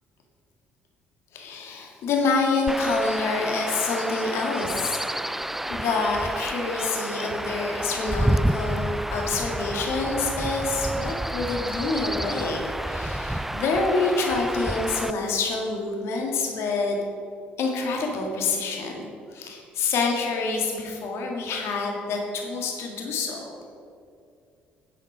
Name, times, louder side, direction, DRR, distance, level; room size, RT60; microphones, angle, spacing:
voice 1, 1.3-5.0 5.7-17.0 17.6-19.0 19.3-23.5, left 3 dB, 60° left, 1 dB, 1.9 m, -27 dB
Chirp tweet / Wind / Stream, 2.7-15.1, right 1 dB, 5° right, 0.3 m, -29 dB
9.9 x 7.7 x 5.0 m, 2.5 s
hypercardioid pair, 50°, 5 cm